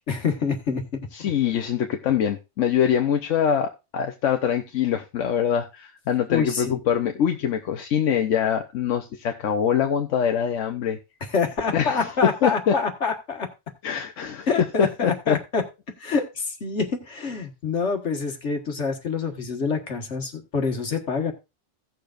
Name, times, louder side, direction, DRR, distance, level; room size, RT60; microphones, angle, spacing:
voice 1, 0.1-1.3 6.3-6.7 11.2-13.5 14.5-15.6 16.0-21.3, left 5 dB, 70° left, 1.9 m, -26 dB
voice 2, 1.1-11.0 11.7-12.7 13.8-14.5 14.8-15.4, left 8 dB, 85° left, 1.1 m, -24 dB
16.5 x 6.8 x 2.5 m
omnidirectional pair, 1.2 m